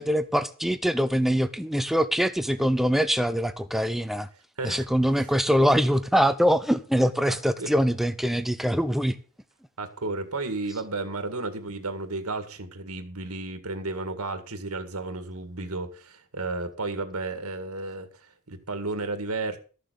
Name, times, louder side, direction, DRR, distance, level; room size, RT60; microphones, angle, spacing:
voice 1, 0.0-4.3 4.6-9.2, equal, ahead, 0.6 m, -23 dB
voice 2, 7.3-7.7 9.8-19.6, right 3 dB, 80° right, 2.0 m, -33 dB
13.5 x 7.1 x 6.8 m
head